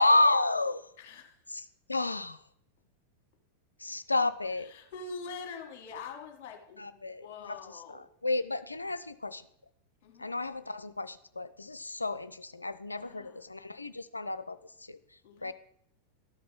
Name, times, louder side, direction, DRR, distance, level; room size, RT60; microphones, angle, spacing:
voice 1, 0.0-0.9 1.9-2.4 3.8-4.7 6.8-7.6 7.9-9.4 10.2-15.0 15.4-15.5, left 2 dB, 80° left, 13 dB, 0.4 m, -30 dB
voice 2, 1.0-1.5 4.5-8.1 10.0-10.3 13.0-13.4 15.2-15.5, left 4 dB, 45° left, 3 dB, 1.6 m, -45 dB
12.5 x 4.6 x 3.9 m, 0.72 s
figure-of-eight pair, 90°, 0 cm